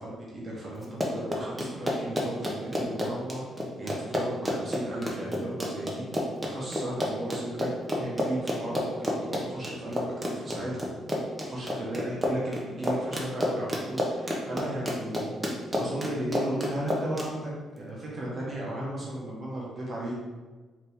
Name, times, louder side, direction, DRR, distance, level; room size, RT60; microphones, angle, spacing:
voice 1, 0.0-6.2 6.5-7.7 8.0-10.9 11.4-20.2, right 1 dB, 40° right, -4 dB, 1.2 m, -35 dB
Run, 0.8-17.3, equal, 15° right, 0.8 m, -30 dB
4.2 x 3.0 x 3.5 m, 1.3 s
cardioid pair, 90°, 0 cm